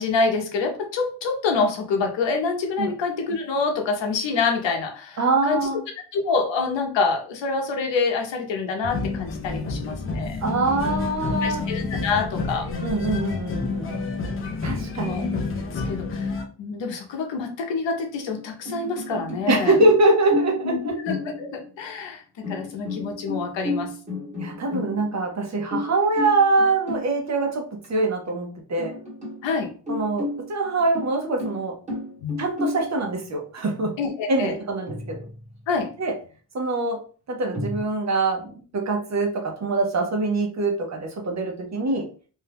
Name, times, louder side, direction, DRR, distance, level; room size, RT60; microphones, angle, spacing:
voice 1, 0.0-5.7 6.1-10.4 11.4-12.7 15.0-16.3 16.6-19.8 20.6-23.9 29.4-29.7 32.2-32.4 34.0-34.5 35.7-35.9, left 4 dB, 70° left, 3 dB, 0.8 m, -26 dB
voice 2, 5.2-5.8 10.4-11.6 12.8-14.0 14.6-15.3 19.5-21.0 24.4-27.6 27.9-28.9 29.9-31.7 32.4-33.9 34.3-35.2 36.0-36.1 36.5-37.0 37.3-42.1, right 2 dB, 35° right, 2 dB, 0.7 m, -23 dB
sound 1, 8.8-16.5, left 3 dB, 30° left, 0.4 m, -29 dB
sound 2, 18.4-19.5 19.8-20.7 21.1-21.7 22.4-25.3 25.7-27.2 27.8-27.9 28.3-28.4 28.8-29.5 29.9-32.9 34.9-35.6 37.5-37.8, left 2 dB, 15° right, 1.2 m, -32 dB
2.7 x 2.2 x 3.3 m, 0.39 s
cardioid pair, 140°, 46 cm